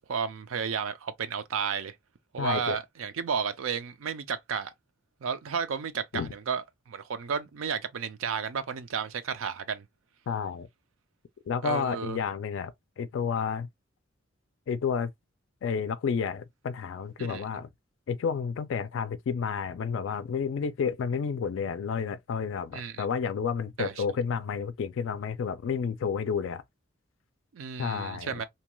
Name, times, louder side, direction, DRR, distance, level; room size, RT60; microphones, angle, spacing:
voice 1, 0.0-1.9 2.3-4.7 5.2-9.9 11.6-12.2 17.2-17.4 22.7-23.1 23.8-24.0 27.5-28.4, right 6 dB, 85° right, 0.4 m, -32 dB
voice 2, 2.4-2.8 6.1-6.3 10.3-10.7 11.5-12.7 13.0-13.7 14.7-15.1 15.6-17.7 18.1-26.6 27.8-28.4, left 6 dB, 70° left, 0.3 m, -30 dB
2.7 x 2.2 x 2.9 m
head